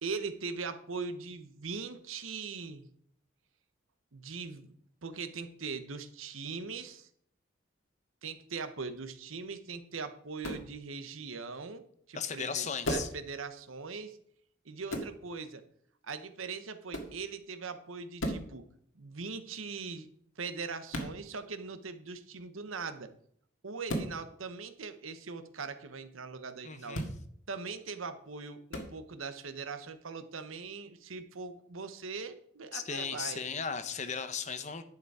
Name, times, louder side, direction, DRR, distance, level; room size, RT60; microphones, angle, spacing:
voice 1, 0.0-2.9 4.1-4.7 5.0-7.1 8.2-14.2 14.6-15.6 16.0-18.7 18.9-20.1 20.4-23.1 23.6-27.1 27.5-33.4, right 4 dB, 85° right, 10 dB, 1.0 m, -41 dB
sound 1, 10.4-10.7 12.8-13.2 14.9-15.1 16.9-17.2 18.2-18.5 20.9-21.1 23.9-24.1 26.9-27.2 28.7-28.9, equal, 80° left, 1.9 m, -34 dB
voice 2, 12.1-13.1 26.6-27.0 32.7-34.8, left 6 dB, 35° left, 10 dB, 0.8 m, -36 dB
11.0 x 6.8 x 4.8 m, 0.64 s
head